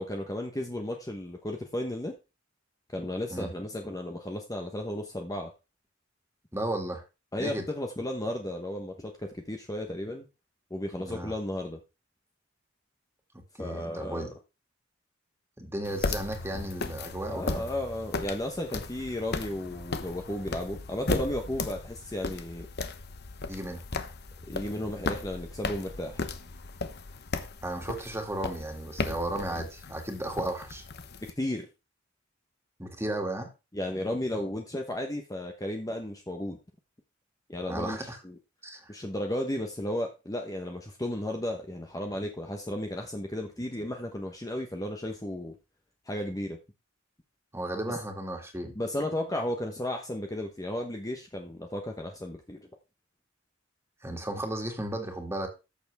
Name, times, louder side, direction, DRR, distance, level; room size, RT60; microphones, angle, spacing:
voice 1, 0.0-2.1 2.9-5.5 7.3-10.3 10.7-11.8 13.6-14.3 17.3-22.7 24.5-26.2 31.2-31.7 33.7-36.6 37.5-38.4 38.9-45.5 46.1-46.6 47.9-48.0 48.7-52.6, left 1 dB, 20° left, 3 dB, 1.0 m, -34 dB
voice 2, 6.5-7.0 7.4-7.6 11.0-11.3 13.6-14.3 15.6-17.6 23.5-23.8 27.6-30.8 32.8-33.5 37.7-38.2 38.6-38.9 47.5-48.7 54.0-55.5, right 1 dB, 15° right, 3 dB, 2.3 m, -34 dB
sound 1, 15.8-31.3, left 3 dB, 55° left, 1.0 m, -36 dB
13.5 x 7.0 x 3.5 m, 0.28 s
head